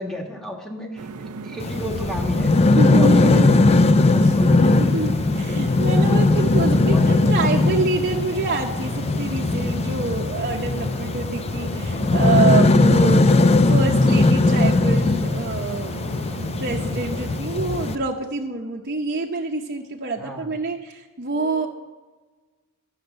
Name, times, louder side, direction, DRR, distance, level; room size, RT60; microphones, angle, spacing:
voice 1, 0.0-5.2 6.9-7.7 20.2-20.5, equal, ahead, 1 dB, 1.4 m, -34 dB
sound 1, 1.0-17.4, right 4 dB, 80° right, 0.5 m, -37 dB
sound 2, 1.6-18.0, left 2 dB, 30° left, 0.4 m, -19 dB
voice 2, 2.8-3.9 4.8-16.2 16.6-21.7, right 3 dB, 45° right, -2 dB, 0.8 m, -26 dB
10.5 x 6.5 x 7.9 m, 1.3 s
head